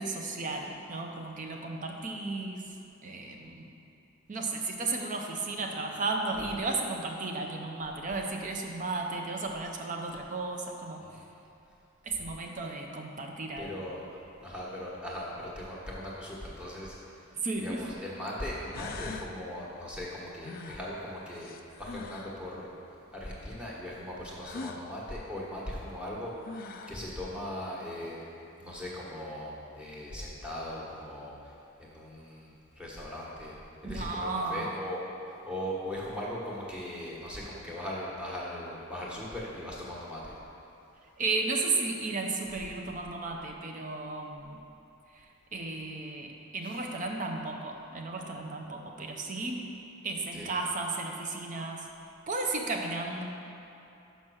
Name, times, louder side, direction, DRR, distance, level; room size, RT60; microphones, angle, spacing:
voice 1, 0.0-2.7 3.0-3.7 4.3-11.0 12.0-13.8 17.4-17.9 33.8-34.7 41.2-44.6 45.1-49.7 50.0-51.9 52.3-53.2, right 3 dB, 35° right, 2 dB, 0.6 m, -34 dB
voice 2, 13.6-16.9 17.6-21.5 21.8-22.7 23.1-28.2 28.6-31.3 31.8-33.6 33.8-35.0 35.3-40.3 46.6-46.7 50.3-50.5, left 1 dB, 5° right, -5 dB, 1.2 m, -39 dB
sound 1, 17.2-17.3 18.3-18.4 18.7-19.4 20.4-22.4 24.4-24.8 26.1-26.2 26.4-27.1, left 4 dB, 45° left, 0.4 m, -42 dB
6.0 x 5.3 x 6.2 m, 2.8 s
head